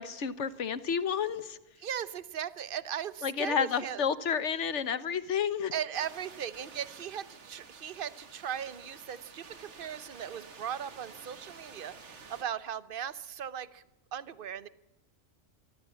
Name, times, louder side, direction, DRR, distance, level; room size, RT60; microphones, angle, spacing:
voice 1, 0.0-1.6 3.2-5.7, left 7 dB, 65° left, 15 dB, 1.4 m, -30 dB
voice 2, 1.8-4.0 5.7-13.8 14.1-14.7, right 9 dB, 45° right, 16 dB, 1.0 m, -38 dB
sound 1, 5.9-12.4, right 4 dB, 60° right, 2.0 m, -51 dB
24.5 x 14.5 x 8.3 m, 0.90 s
omnidirectional pair, 1.3 m